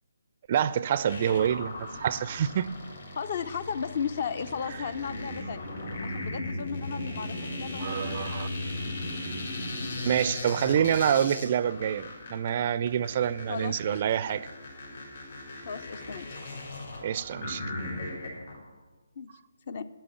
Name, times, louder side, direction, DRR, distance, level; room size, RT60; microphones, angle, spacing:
voice 1, 0.5-1.7 2.0-2.7 7.8-8.5 10.0-14.5 17.0-17.6, right 9 dB, 40° right, 0.4 m, -27 dB
sound 1, 1.1-18.6, left 2 dB, 70° left, 4.1 m, -37 dB
voice 2, 3.2-5.7 6.0-8.0 13.5-14.0 15.7-16.4 19.2-19.3 19.7-19.9, left 6 dB, 50° left, 0.6 m, -35 dB
8.7 x 8.7 x 7.1 m
figure-of-eight pair, 150°, 0 cm